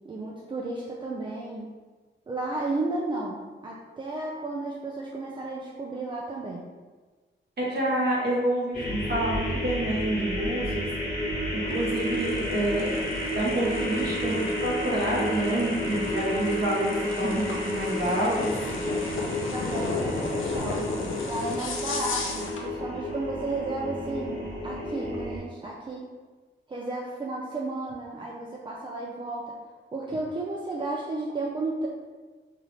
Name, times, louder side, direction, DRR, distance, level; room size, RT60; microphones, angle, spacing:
voice 1, 0.0-1.7 2.3-6.7 19.5-20.9 21.3-26.0 26.7-29.5 29.9-31.9, right 2 dB, 25° right, -3 dB, 0.4 m, -33 dB
voice 2, 7.6-10.9 11.5-18.5, right 1 dB, 55° right, -5 dB, 1.2 m, -28 dB
sound 1, 8.7-25.4, left 1 dB, 45° left, 1.1 m, -31 dB
sound 2, 11.7-22.7, left 3 dB, 85° left, 0.6 m, -35 dB
5.5 x 2.5 x 3.2 m, 1.3 s
wide cardioid pair, 150°, 20 cm